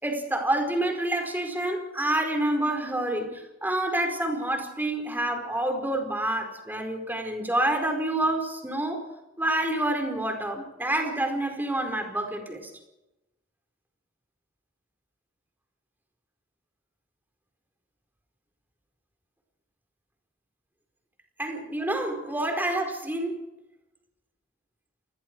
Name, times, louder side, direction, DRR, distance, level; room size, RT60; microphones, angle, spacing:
voice 1, 0.0-9.0 9.4-12.7 21.4-23.4, right 1 dB, 10° right, 4 dB, 4.7 m, -28 dB
29.0 x 20.5 x 4.7 m, 0.97 s
head